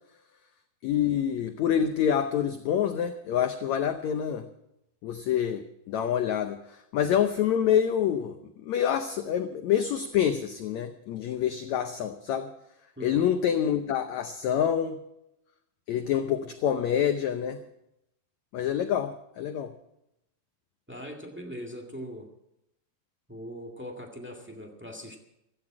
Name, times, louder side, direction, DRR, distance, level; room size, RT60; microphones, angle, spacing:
voice 1, 0.8-4.5 5.0-12.5 13.0-15.0 15.9-17.6 18.5-19.7, left 9 dB, 75° left, 8 dB, 1.7 m, -27 dB
voice 2, 20.9-22.3 23.3-25.2, equal, 10° right, 0 dB, 0.5 m, -40 dB
16.5 x 13.5 x 4.8 m, 0.84 s
omnidirectional pair, 4.1 m